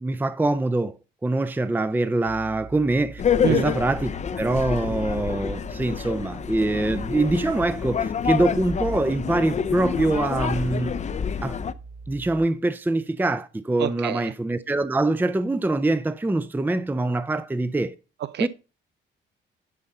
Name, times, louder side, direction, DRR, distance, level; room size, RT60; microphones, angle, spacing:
voice 1, 0.0-3.2 3.5-4.1 4.4-10.9 11.4-11.6 12.1-17.9 18.4-18.5, right 2 dB, 10° right, 0.5 m, -24 dB
sound 1, 2.2-12.5, right 4 dB, 40° right, 1.0 m, -43 dB
sound 2, 3.2-11.7, left 7 dB, 35° left, 0.6 m, -27 dB
voice 2, 13.8-14.3 18.2-18.5, right 11 dB, 60° right, 0.4 m, -27 dB
11.0 x 5.3 x 4.3 m
cardioid pair, 90°, 20 cm